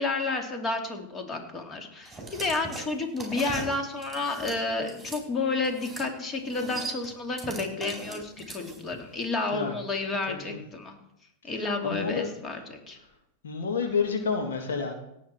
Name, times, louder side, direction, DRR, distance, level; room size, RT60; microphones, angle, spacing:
voice 1, 0.0-11.0 11.4-13.0, left 3 dB, 25° left, 4 dB, 2.5 m, -31 dB
sound 1, 2.0-5.2 5.6-6.1 6.3-9.0, right 3 dB, 5° right, 5.3 m, -40 dB
voice 2, 10.3-10.6 11.4-11.5 11.8-12.3 13.4-14.9, left 5 dB, 80° left, 4 dB, 2.2 m, -29 dB
17.5 x 8.0 x 4.4 m, 0.80 s
hypercardioid pair, 110°, 0 cm